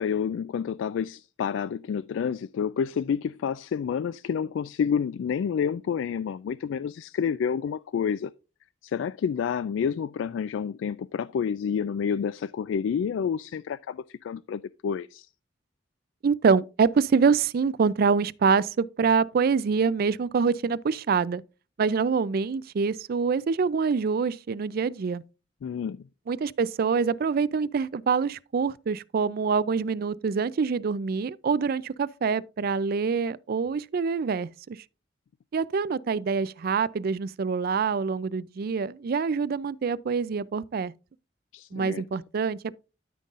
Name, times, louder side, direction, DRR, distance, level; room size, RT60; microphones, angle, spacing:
voice 1, 0.0-8.3 8.8-15.3 25.6-26.0 41.5-42.0, left 7 dB, 85° left, 0.3 m, -29 dB
voice 2, 16.2-21.4 21.8-25.2 26.3-34.8 35.5-40.9 41.7-42.8, right 5 dB, 55° right, 0.4 m, -25 dB
13.0 x 5.4 x 2.5 m
head